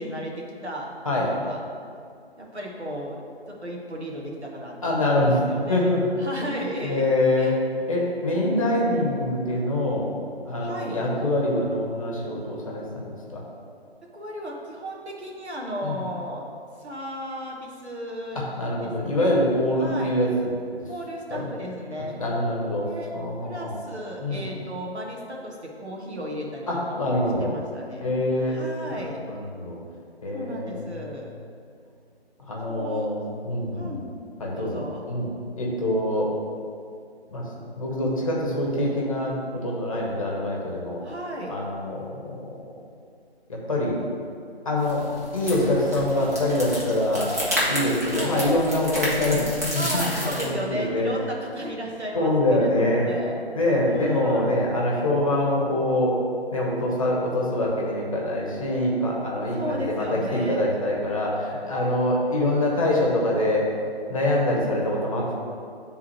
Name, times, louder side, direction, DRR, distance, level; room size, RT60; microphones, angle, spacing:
voice 1, 0.0-0.9 1.1-1.6 2.4-3.2 3.5-4.7 5.1-5.9 6.2-7.0 7.4-7.6 8.3-9.0 10.6-11.0 14.1-16.4 16.8-18.5 18.8-19.3 19.8-20.1 20.8-22.2 22.8-23.1 23.4-27.1 27.4-28.0 28.5-29.2 30.3-31.3 32.7-33.1 33.7-34.1 34.5-35.1 41.0-41.6 48.0-48.4 49.7-53.4 53.8-54.6 59.5-60.7, equal, 90° right, -1 dB, 1.4 m, -35 dB
voice 2, 4.8-5.4 5.7-6.0 6.8-7.5 7.9-10.1 10.5-13.4 15.8-16.0 18.3-20.5 21.3-21.4 22.2-22.9 23.1-23.9 24.2-24.4 26.7-27.5 28.0-28.6 28.9-29.8 30.2-31.1 32.5-34.0 34.4-36.3 37.3-37.4 37.8-39.3 39.6-41.0 41.5-42.1 43.5-44.0 44.6-45.0 45.3-47.3 47.6-51.1 52.1-53.1 53.6-56.1 56.5-63.7 64.1-65.3, left 1 dB, 30° left, -3 dB, 0.9 m, -25 dB
sound 1, 44.8-50.4, equal, 15° right, 0.6 m, -30 dB
9.3 x 3.6 x 3.1 m, 2.3 s
figure-of-eight pair, 155°, 32 cm